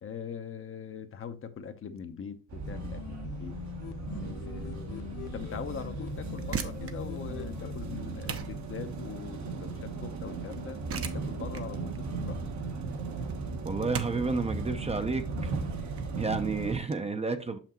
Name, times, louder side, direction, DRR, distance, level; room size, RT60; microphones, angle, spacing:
voice 1, 0.0-3.5 4.2-12.4, left 6 dB, 45° left, 0.8 m, -42 dB
sound 1, 2.5-16.8, right 4 dB, 65° right, 1.2 m, -37 dB
sound 2, 2.6-8.0, left 13 dB, 90° left, 0.5 m, -43 dB
sound 3, 6.4-17.0, right 7 dB, 50° right, 0.8 m, -42 dB
voice 2, 13.6-15.5 16.2-17.6, right 4 dB, 20° right, 0.6 m, -31 dB
6.4 x 5.8 x 2.9 m
cardioid pair, 90°, 30 cm